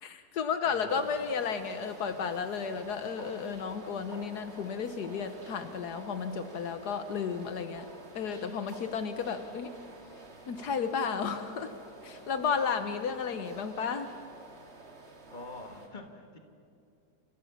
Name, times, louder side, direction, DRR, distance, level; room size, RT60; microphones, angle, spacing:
voice 1, 0.0-7.8 8.1-9.7 10.5-11.7 12.0-14.1, left 6 dB, 75° left, 9 dB, 1.5 m, -33 dB
voice 2, 0.6-1.1 15.3-16.4, left 2 dB, 30° left, 5 dB, 1.8 m, -46 dB
sound 1, 0.9-15.9, right 2 dB, 40° right, 2.2 m, -49 dB
29.0 x 15.0 x 7.2 m, 2.6 s
omnidirectional pair, 1.7 m